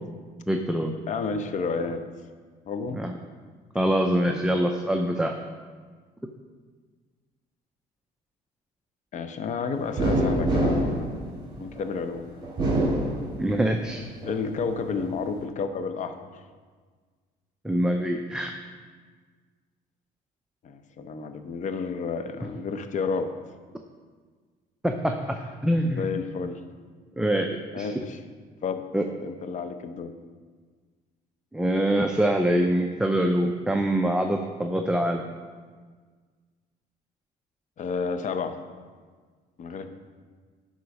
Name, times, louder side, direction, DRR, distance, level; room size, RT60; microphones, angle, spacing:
voice 1, 0.5-0.9 2.9-3.2 3.7-5.3 13.4-14.0 17.6-18.5 24.8-25.2 25.6-26.1 27.2-27.9 28.9-29.1 31.5-35.2, right 1 dB, 5° right, 3 dB, 0.5 m, -24 dB
voice 2, 1.1-2.1 2.7-3.0 4.3-4.4 9.1-11.3 11.6-12.4 14.2-16.2 20.6-23.3 25.9-26.6 27.7-28.2 28.6-28.8 29.2-30.1 37.8-38.6 39.6-39.9, left 5 dB, 45° left, 8 dB, 0.7 m, -31 dB
sound 1, 10.0-11.9 12.4-13.8 14.2-15.1, right 1 dB, 25° right, 2.6 m, -25 dB
11.5 x 3.9 x 5.3 m, 1.5 s
cardioid pair, 110°, 17 cm